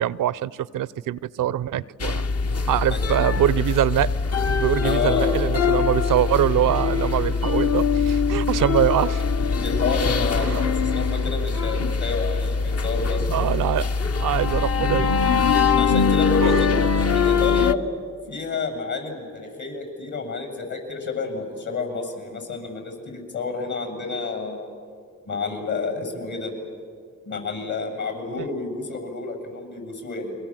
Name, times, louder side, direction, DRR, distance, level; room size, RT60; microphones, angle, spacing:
voice 1, 0.0-2.3 2.7-4.1 4.5-9.2 10.4-10.7 13.3-13.9 14.2-15.7 16.4-16.7, right 12 dB, 80° right, 20 dB, 0.6 m, -24 dB
sound 1, 2.0-17.7, left 5 dB, 50° left, 0.9 m, -22 dB
voice 2, 4.8-5.4 9.5-13.3 15.8-17.9 18.3-24.7 25.3-26.5 27.3-30.4, left 4 dB, 65° left, 4 dB, 7.6 m, -29 dB
29.5 x 23.0 x 7.6 m, 2.1 s
supercardioid pair, 45°, 31 cm